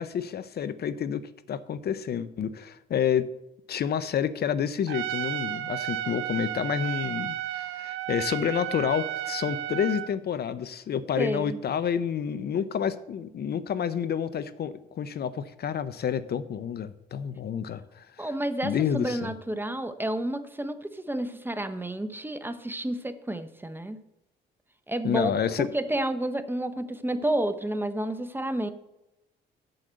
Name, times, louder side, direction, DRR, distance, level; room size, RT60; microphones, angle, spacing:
voice 1, 0.0-3.3 3.7-18.3 18.6-19.3 25.0-25.7, left 8 dB, 55° left, 14 dB, 0.6 m, -29 dB
Trumpet, 4.9-10.1, right 13 dB, 80° right, 0.6 m, -33 dB
voice 2, 11.2-11.6 18.2-24.0 24.9-25.3 25.6-28.7, right 1 dB, 10° right, 10 dB, 0.8 m, -30 dB
7.8 x 6.5 x 7.5 m, 0.92 s
cardioid pair, 90°, 20 cm